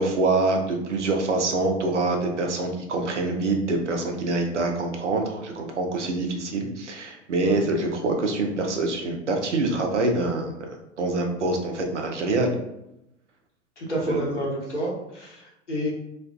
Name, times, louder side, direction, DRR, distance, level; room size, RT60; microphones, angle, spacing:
voice 1, 0.0-12.6 14.1-14.4, right 2 dB, 90° right, 2 dB, 0.5 m, -25 dB
voice 2, 13.8-15.9, equal, 85° left, -5 dB, 0.9 m, -29 dB
2.4 x 2.2 x 2.3 m, 0.85 s
figure-of-eight pair, 80°, 35 cm